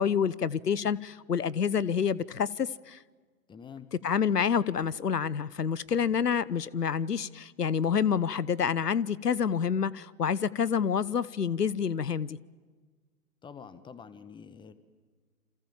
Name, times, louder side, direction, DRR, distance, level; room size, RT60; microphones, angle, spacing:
voice 1, 0.0-3.0 4.0-12.4, left 7 dB, 90° left, 1.0 m, -28 dB
voice 2, 3.5-3.9 13.4-14.7, left 6 dB, 10° left, 1.5 m, -47 dB
29.0 x 27.5 x 7.4 m
hypercardioid pair, 125°, 46 cm